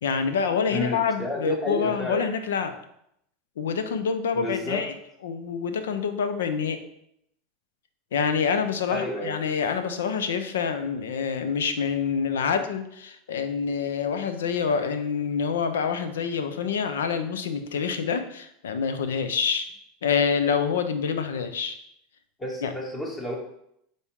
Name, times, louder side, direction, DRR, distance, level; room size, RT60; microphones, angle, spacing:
voice 1, 0.0-2.7 3.6-4.9 5.2-6.8 8.1-19.7 20.0-21.8 22.6-22.7, left 6 dB, 80° left, 9 dB, 0.7 m, -26 dB
voice 2, 0.7-2.2 4.3-4.8 8.9-9.3 22.4-23.4, left 1 dB, 20° left, -2 dB, 2.3 m, -31 dB
8.0 x 4.2 x 3.7 m, 0.76 s
hypercardioid pair, 85°, 0 cm